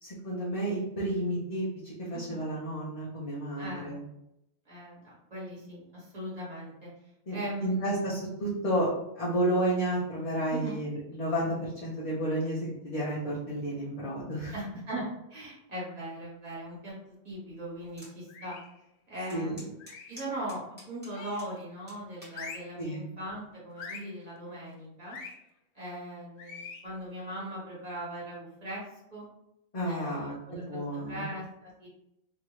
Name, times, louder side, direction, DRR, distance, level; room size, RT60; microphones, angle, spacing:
voice 1, 0.0-4.0 7.3-8.9 9.2-14.5 19.3-19.6 22.8-23.0 29.7-31.3, right 1 dB, 40° left, -6 dB, 0.7 m, -31 dB
voice 2, 2.1-2.4 3.6-4.0 4.6-6.9 7.3-8.0 10.5-10.8 14.5-18.6 19.1-19.7 20.1-25.2 25.7-28.8 29.1-29.2 29.8-31.9, right 1 dB, 40° right, -6 dB, 1.3 m, -40 dB
sound 1, 18.0-18.1 18.6-18.7 19.3-21.5 21.9-22.4 23.1-23.4, equal, 10° right, 1.2 m, -49 dB
sound 2, 18.3-18.8 19.8-20.2 21.1-21.6 22.3-22.8 23.8-24.2 25.1-25.4 26.4-26.9, left 5 dB, 80° left, 0.8 m, -44 dB
2.8 x 2.5 x 3.1 m, 0.83 s
omnidirectional pair, 1.1 m